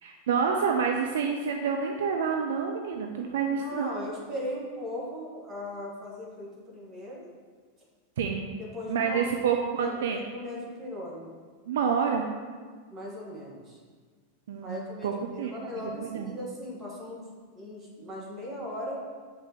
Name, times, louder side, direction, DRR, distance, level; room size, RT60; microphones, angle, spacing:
voice 1, 0.0-3.9 8.2-8.5 8.9-10.2 11.7-12.3 14.5-15.1 15.4-16.3, right 6 dB, 60° right, 3 dB, 0.5 m, -28 dB
voice 2, 3.5-7.3 8.6-11.3 12.9-13.8 14.6-17.3 17.5-19.0, left 1 dB, 20° right, -4 dB, 1.8 m, -38 dB
7.2 x 5.1 x 3.2 m, 1.5 s
figure-of-eight pair, 90°, 0 cm